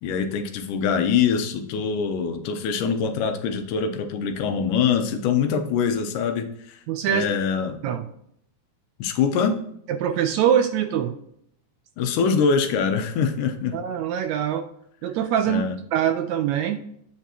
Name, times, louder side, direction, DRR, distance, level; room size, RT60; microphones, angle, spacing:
voice 1, 0.0-6.8 7.1-7.8 9.0-9.6 12.0-13.8 15.5-15.8, left 6 dB, 80° left, 7 dB, 2.4 m, -24 dB
voice 2, 6.9-7.3 7.8-8.1 9.9-11.1 13.7-14.7 15.0-15.6 15.9-16.8, right 9 dB, 80° right, 8 dB, 1.6 m, -23 dB
8.6 x 5.7 x 2.9 m, 0.72 s
omnidirectional pair, 3.7 m